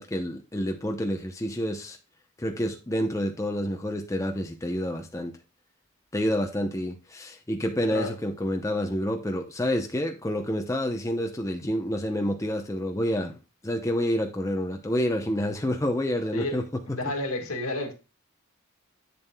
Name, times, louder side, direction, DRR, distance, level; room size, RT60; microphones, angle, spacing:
voice 1, 0.0-2.0 2.4-5.3 6.1-13.4 13.6-16.8, equal, 15° left, 0.7 m, -28 dB
voice 2, 16.9-17.9, left 2 dB, 80° left, 2.1 m, -31 dB
8.5 x 7.2 x 2.2 m
head